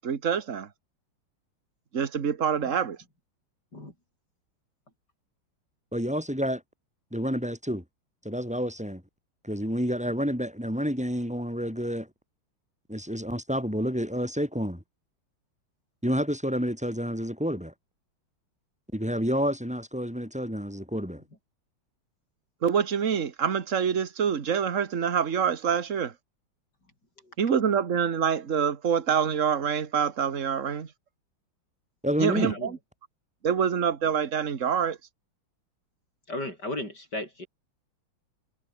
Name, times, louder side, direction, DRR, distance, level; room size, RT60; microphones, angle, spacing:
voice 1, 0.0-0.7 1.9-3.0 22.6-26.1 27.4-30.9 32.2-32.7 33.4-35.0, right 7 dB, 40° right, 1.8 m, -26 dB
voice 2, 5.9-6.6 7.1-7.8 8.2-9.0 9.4-12.1 12.9-14.8 16.0-17.7 18.9-21.2 32.0-32.5, equal, 5° right, 7.6 m, -29 dB
voice 3, 32.4-32.7 36.3-37.5, left 1 dB, 50° left, 8.8 m, -35 dB
omnidirectional pair, 2.3 m